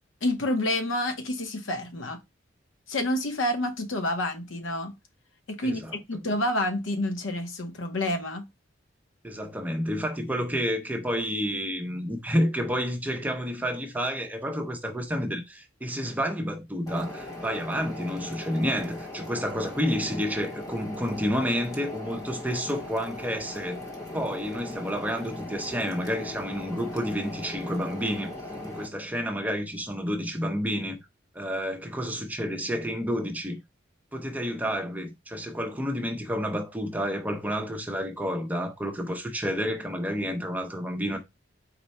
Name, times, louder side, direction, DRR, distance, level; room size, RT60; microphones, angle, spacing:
voice 1, 0.2-2.2 2.9-4.9 5.5-8.5, left 1 dB, 90° left, 0.9 m, -28 dB
voice 2, 5.6-6.0 9.2-23.8 24.1-28.3 28.6-31.0 31.3-33.6 34.1-41.2, equal, 10° right, 0.6 m, -30 dB
sound 1, 16.9-28.9, left 1 dB, 20° left, 0.9 m, -39 dB
4.2 x 2.2 x 4.1 m
head